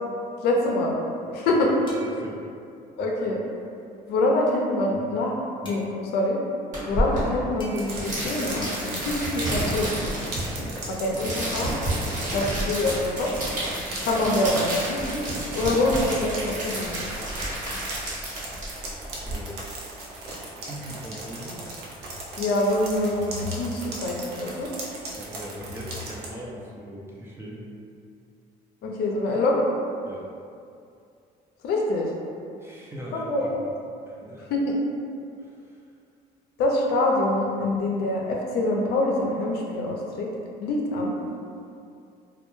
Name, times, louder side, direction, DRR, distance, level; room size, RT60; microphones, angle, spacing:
voice 1, 0.4-1.0 1.3-1.7 3.0-3.4 4.1-5.3 5.6-6.4 6.9-10.0 10.9-11.7 12.3-13.3 14.0-15.2 15.5-17.1 22.4-24.7 28.8-29.6 31.6-32.1 33.1-33.6 34.5-34.6 36.6-40.3 40.6-41.2, left 2 dB, 75° left, -1 dB, 0.5 m, -25 dB
sound 1, 1.9-2.4 5.6-5.9 7.6-7.9, right 1 dB, 30° left, 0.6 m, -44 dB
voice 2, 1.9-2.4 19.1-19.5 20.6-21.6 25.2-27.7 30.0-30.3 32.6-33.5 34.1-34.5 35.4-35.8, equal, 15° right, -5 dB, 0.4 m, -41 dB
sound 2, 6.7-19.3, right 1 dB, 45° right, 1.2 m, -30 dB
sound 3, 7.7-26.3, right 1 dB, 75° right, 0.6 m, -38 dB
2.2 x 2.1 x 3.0 m, 2.5 s
cardioid pair, 110°, 17 cm